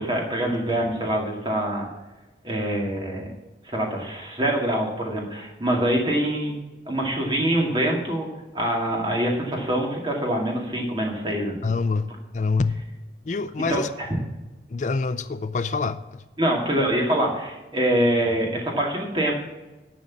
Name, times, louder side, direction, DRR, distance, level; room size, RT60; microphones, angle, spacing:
voice 1, 0.0-1.8 2.4-3.3 3.6-6.5 6.9-8.3 8.5-11.6 13.7-14.1 16.4-19.3, right 1 dB, 25° right, 2.2 m, -24 dB
voice 2, 11.6-12.8 13.2-13.9 14.7-16.2, left 4 dB, 45° left, 0.4 m, -26 dB
11.0 x 5.2 x 8.5 m
head